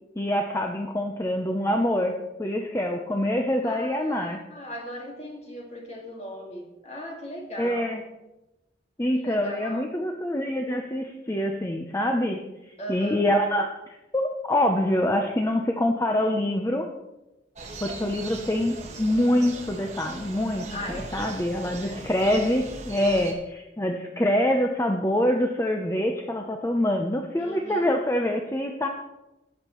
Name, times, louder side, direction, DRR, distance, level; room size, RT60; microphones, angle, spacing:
voice 1, 0.2-2.1 2.4-4.4 7.6-8.0 9.0-12.4 12.7-16.9 17.8-20.6 21.1-28.9, left 1 dB, 15° left, 3 dB, 0.6 m, -25 dB
voice 2, 3.6-7.9 9.1-9.9 12.8-13.2 20.7-22.1 23.0-23.2 27.4-27.9, equal, 35° left, 0 dB, 1.9 m, -38 dB
sound 1, 17.5-23.3, right 2 dB, 40° right, 1.5 m, -40 dB
17.5 x 7.3 x 3.0 m, 0.99 s
head